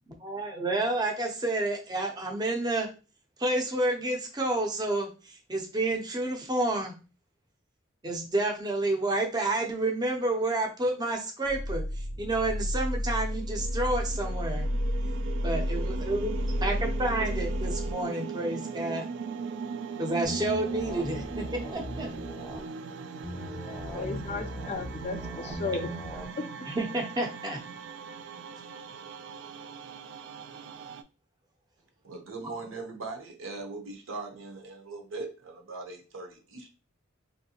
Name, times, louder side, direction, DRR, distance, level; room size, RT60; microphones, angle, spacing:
voice 1, 0.2-2.9 3.4-6.9 8.0-11.8 12.2-14.7 15.4-16.3 16.6-16.7 17.0-19.0 20.0-22.1 26.7-27.6, right 2 dB, 20° right, 0.6 m, -29 dB
sound 1, 11.5-17.9, equal, 85° left, 0.6 m, -31 dB
sound 2, 13.3-31.0, right 5 dB, 60° right, 0.3 m, -39 dB
sound 3, 20.2-22.6 23.2-26.2, left 1 dB, 5° right, 0.9 m, -39 dB
voice 2, 23.7-26.4, left 3 dB, 30° left, 0.3 m, -35 dB
voice 3, 32.0-36.7, right 3 dB, 80° right, 0.8 m, -40 dB
3.2 x 2.7 x 2.8 m
head